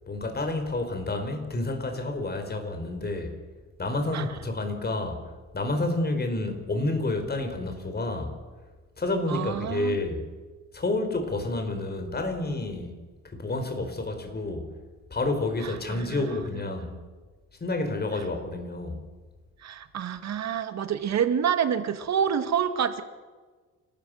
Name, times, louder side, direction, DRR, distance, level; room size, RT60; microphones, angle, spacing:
voice 1, 0.1-3.4 3.8-8.4 9.0-10.3 10.7-13.0 13.2-14.7 15.1-16.9 17.6-19.0, left 2 dB, 30° left, 6 dB, 4.9 m, -29 dB
voice 2, 9.3-10.0 15.6-16.2 19.6-23.0, right 8 dB, 65° right, 9 dB, 2.0 m, -27 dB
30.0 x 14.0 x 6.6 m, 1.4 s
cardioid pair, 90°, 30 cm